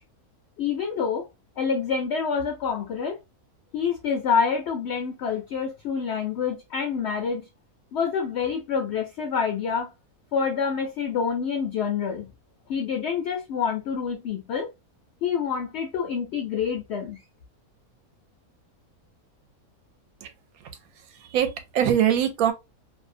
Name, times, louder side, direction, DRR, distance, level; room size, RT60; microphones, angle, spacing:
voice 1, 0.6-1.2 1.6-3.2 3.7-7.4 7.9-9.9 10.3-12.3 12.7-14.7 15.2-17.2, left 6 dB, 65° left, 0.6 m, -27 dB
voice 2, 21.1-22.5, right 9 dB, 75° right, 1.0 m, -23 dB
2.6 x 2.1 x 2.5 m
omnidirectional pair, 1.6 m